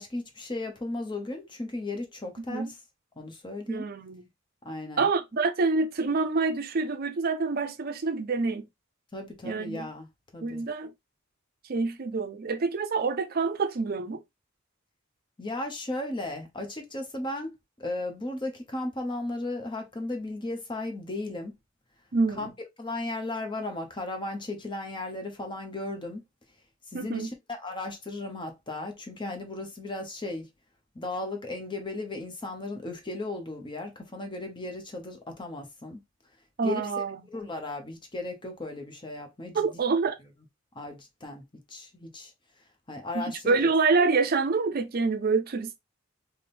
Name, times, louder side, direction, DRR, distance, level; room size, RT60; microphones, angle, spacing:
voice 1, 0.0-2.7 3.2-3.9 4.6-5.1 9.1-10.6 15.4-17.5 17.8-21.6 22.4-22.5 22.8-26.2 26.9-30.5 30.9-36.0 36.6-36.9 37.3-39.7 40.7-42.3 42.9-43.7, left 2 dB, 25° left, 0.8 m, -35 dB
voice 2, 3.7-4.2 5.0-8.7 9.4-9.9 10.4-10.9 11.6-14.2 22.1-22.5 26.9-27.3 36.6-37.2 39.5-40.1 43.1-45.8, right 4 dB, 50° right, 0.5 m, -27 dB
3.5 x 2.2 x 4.2 m
head